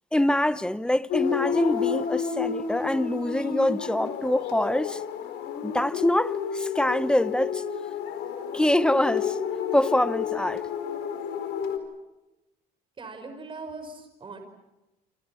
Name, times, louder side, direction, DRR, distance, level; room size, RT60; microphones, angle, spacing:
voice 1, 0.1-5.0 5.6-7.6 8.5-9.4 9.7-10.6, left 1 dB, 5° left, 0.9 m, -25 dB
sound 1, 1.1-11.8, left 8 dB, 80° left, 4.4 m, -30 dB
voice 2, 13.0-14.4, right 3 dB, 30° right, 5.5 m, -40 dB
28.0 x 27.5 x 5.8 m
cardioid pair, 110°, 17 cm